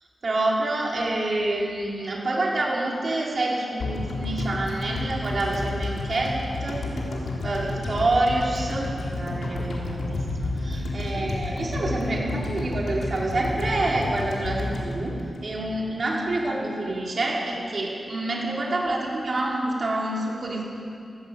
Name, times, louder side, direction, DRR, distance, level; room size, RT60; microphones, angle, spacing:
voice 1, 0.2-6.3 6.6-6.8 7.4-15.1 15.4-20.6, right 2 dB, 50° right, -3 dB, 5.2 m, -27 dB
sound 1, 3.8-16.0 16.3-16.4, left 2 dB, 80° left, 3.9 m, -30 dB
20.0 x 15.0 x 8.7 m, 2.5 s
wide cardioid pair, 85°, 0 cm